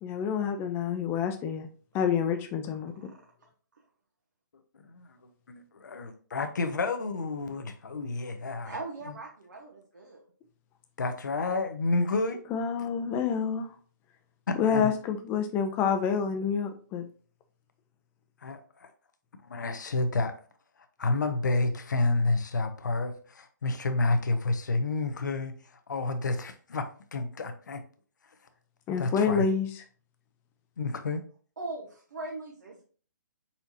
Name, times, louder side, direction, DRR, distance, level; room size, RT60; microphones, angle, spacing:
voice 1, 0.0-1.7 1.9-2.9 12.5-13.7 14.6-17.0 28.9-29.7, left 7 dB, 20° left, 7 dB, 0.6 m, -28 dB
voice 2, 5.5-8.7 11.0-12.4 14.5-14.9 18.4-18.9 19.4-20.4 21.0-25.5 25.9-27.8 29.0-29.4 30.8-31.2, left 3 dB, 70° left, 8 dB, 0.8 m, -30 dB
voice 3, 8.6-10.2 31.6-32.8, right 2 dB, 75° right, -2 dB, 1.2 m, -40 dB
4.5 x 4.2 x 2.7 m, 0.42 s
hypercardioid pair, 135°, 10 cm